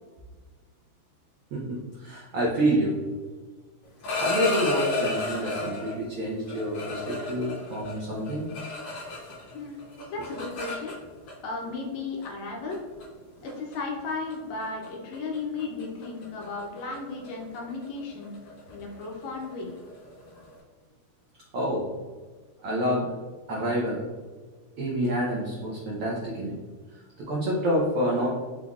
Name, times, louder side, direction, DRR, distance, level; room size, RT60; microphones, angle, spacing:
voice 1, 1.5-3.0 4.2-8.5 21.5-21.9 22.6-23.1 23.5-24.0 24.8-26.6 26.9-28.3, equal, 80° right, -4 dB, 1.2 m, -28 dB
sound 1, 3.8-6.0 6.5-9.5 9.8-11.3 12.2-12.4 12.7-13.0 13.5-13.7 14.1-14.3 14.6-14.9 15.1-20.5, left 3 dB, 55° left, 1.8 m, -33 dB
voice 2, 9.5-10.9 11.4-12.8 13.4-19.7, left 3 dB, 75° left, 0 dB, 1.9 m, -35 dB
5.7 x 3.7 x 2.4 m, 1.5 s
omnidirectional pair, 3.5 m